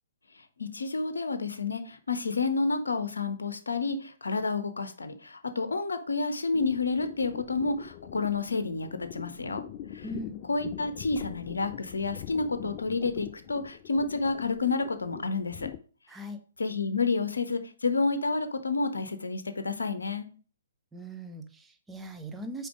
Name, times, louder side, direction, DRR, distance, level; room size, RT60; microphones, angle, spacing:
voice 1, 0.6-9.6 9.9-10.0 10.5-15.7 16.6-20.3, left 3 dB, 70° left, 9 dB, 0.8 m, -30 dB
sound 1, 6.5-15.8, left 12 dB, 30° left, 0.4 m, -43 dB
voice 2, 10.0-10.4 16.1-16.4 20.9-22.7, right 1 dB, 10° right, 6 dB, 0.6 m, -40 dB
5.1 x 4.5 x 4.8 m, 0.40 s
figure-of-eight pair, 125°, 0 cm